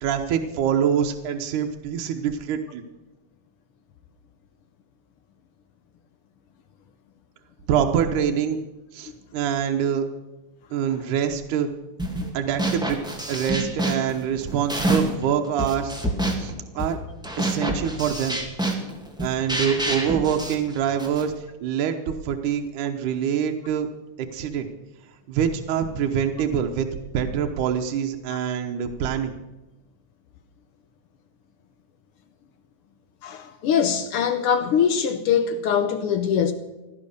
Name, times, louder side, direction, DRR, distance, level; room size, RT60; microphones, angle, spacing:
voice 1, 0.0-2.8 7.7-8.6 8.9-10.1 10.7-11.7 12.3-15.9 16.4-17.0 17.4-18.4 19.2-21.3 21.6-23.9 24.2-24.7 25.3-26.9 27.1-29.3, right 8 dB, 85° right, 2.5 m, -25 dB
sound 1, 12.0-12.3 12.6-15.2 15.6-21.3, right 1 dB, ahead, 1.4 m, -27 dB
voice 2, 33.2-36.5, left 7 dB, 75° left, 1.3 m, -22 dB
16.5 x 12.0 x 6.6 m
omnidirectional pair, 3.5 m